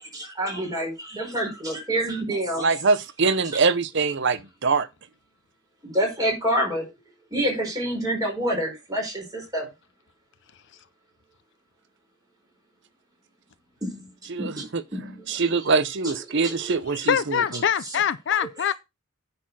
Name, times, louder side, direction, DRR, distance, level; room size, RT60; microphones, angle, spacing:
voice 1, 0.0-2.7 3.5-3.6 5.8-6.9 7.3-9.7 13.8-15.3 16.3-16.8 17.8-18.0 18.3-18.4, right 1 dB, 15° right, 4.5 m, -28 dB
voice 2, 2.6-4.9 14.3-14.8 15.3-17.6, right 4 dB, 55° right, 0.7 m, -23 dB
voice 3, 17.1-18.7, left 8 dB, 55° left, 0.4 m, -23 dB
9.8 x 4.3 x 6.2 m
head